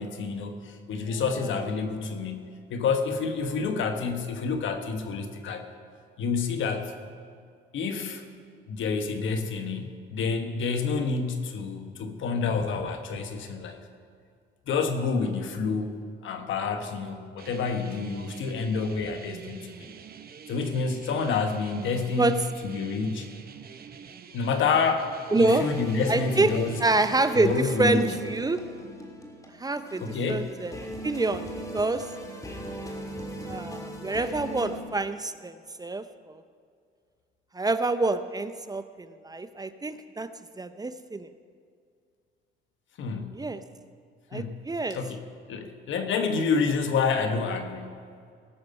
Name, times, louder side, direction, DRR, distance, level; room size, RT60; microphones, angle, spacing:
voice 1, 0.0-5.7 6.2-6.9 7.7-8.2 8.7-13.8 14.7-16.0 16.2-19.9 20.5-23.3 24.3-26.8 27.3-28.1 30.0-30.5 43.0-43.4 44.3-44.6 44.9-45.2 45.5-48.0, left 5 dB, 75° left, 6 dB, 1.3 m, -28 dB
sound 1, 17.4-27.2, right 7 dB, 50° right, 0.8 m, -47 dB
voice 2, 25.3-25.6 26.1-26.5 26.8-28.6 29.6-30.7 31.0-32.1 33.5-36.4 37.5-40.3 40.6-41.3 43.3-43.6 44.3-45.0, right 2 dB, 20° right, 11 dB, 0.6 m, -27 dB
sound 2, 25.4-34.8, equal, 15° left, 2.0 m, -39 dB
18.5 x 6.6 x 5.4 m, 2.2 s
cardioid pair, 90°, 20 cm